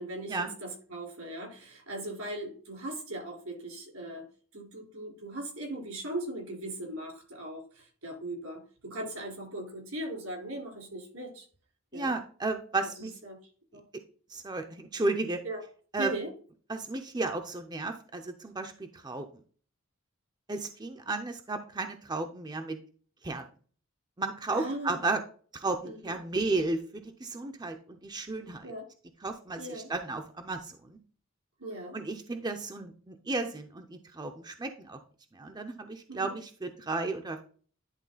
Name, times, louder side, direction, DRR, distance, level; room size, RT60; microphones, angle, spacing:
voice 1, 0.0-4.2 4.5-11.5 11.9-12.2 13.0-13.4 13.7-13.8 15.4-15.6 16.0-16.3 24.5-25.1 25.8-26.2 28.6-28.8 29.6-29.9 31.6-32.0 36.1-36.4, right 1 dB, 85° right, 0 dB, 4.2 m, -39 dB
voice 2, 11.9-13.1 14.3-15.4 15.9-16.1 16.7-19.3 20.5-22.8 23.2-23.4 24.2-25.2 25.5-28.7 29.2-31.0 31.9-35.0 35.3-37.4, right 3 dB, 20° right, 6 dB, 0.6 m, -33 dB
11.0 x 3.8 x 4.0 m, 0.42 s
head